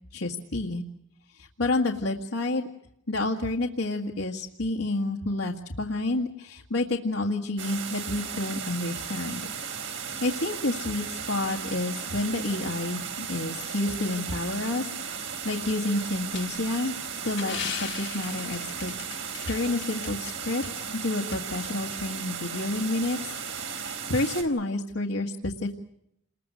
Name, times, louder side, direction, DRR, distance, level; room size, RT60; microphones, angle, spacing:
voice 1, 0.1-0.8 1.3-2.7 3.1-9.5 9.8-17.0 17.2-23.3 23.7-25.7, left 2 dB, 80° left, 0 dB, 1.8 m, -29 dB
sound 1, 7.6-24.4, right 6 dB, 70° right, 3.9 m, -36 dB
sound 2, 16.3-20.3 20.6-20.7 21.3-21.4, left 9 dB, 60° left, 1.5 m, -38 dB
29.0 x 21.5 x 6.3 m, 0.77 s
head